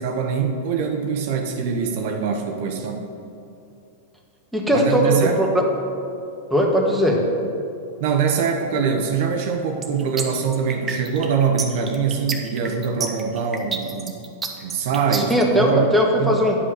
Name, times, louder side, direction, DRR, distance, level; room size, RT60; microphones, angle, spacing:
voice 1, 0.0-3.0 4.7-5.4 8.0-14.2 14.6-15.9 16.2-16.4, right 6 dB, 60° right, 3 dB, 0.9 m, -23 dB
voice 2, 4.5-5.5 6.5-7.2 15.1-16.6, equal, ahead, -2 dB, 1.6 m, -19 dB
sound 1, 9.8-15.4, right 5 dB, 20° right, 1.0 m, -29 dB
9.7 x 5.4 x 6.4 m, 2.6 s
hypercardioid pair, 100°, 0 cm